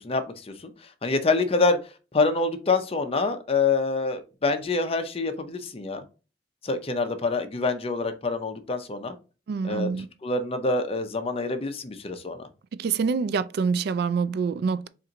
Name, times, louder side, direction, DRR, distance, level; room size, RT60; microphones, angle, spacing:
voice 1, 0.0-1.8 2.1-6.1 6.6-9.1 9.6-9.9 10.2-12.5, left 3 dB, 35° left, 0.6 m, -26 dB
voice 2, 9.5-10.1 12.8-14.9, right 5 dB, 60° right, 0.3 m, -26 dB
4.2 x 2.5 x 3.8 m
head